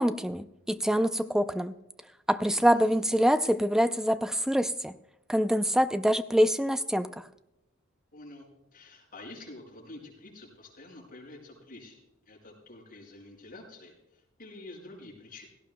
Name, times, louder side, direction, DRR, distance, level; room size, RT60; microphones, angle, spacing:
voice 1, 0.0-1.7 2.3-4.9 5.3-7.2, equal, 5° right, 11 dB, 0.4 m, -25 dB
voice 2, 2.5-3.0 8.1-12.0 12.3-15.5, left 2 dB, 45° left, -2 dB, 5.5 m, -48 dB
17.0 x 16.0 x 2.2 m, 0.86 s
head